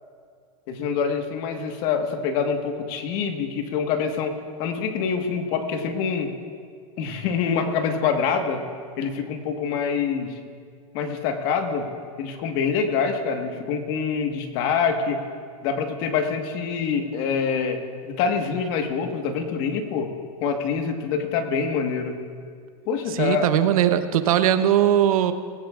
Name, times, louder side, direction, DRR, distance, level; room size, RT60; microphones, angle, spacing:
voice 1, 0.7-4.3 4.6-6.3 7.0-8.6 9.0-10.3 10.9-11.8 12.2-15.2 15.6-20.1 20.4-22.2 22.9-23.5, left 6 dB, 45° left, 5 dB, 1.5 m, -25 dB
voice 2, 23.1-25.3, right 11 dB, 75° right, 10 dB, 0.9 m, -19 dB
19.0 x 17.0 x 2.5 m, 2.1 s
supercardioid pair, 150°, 18 cm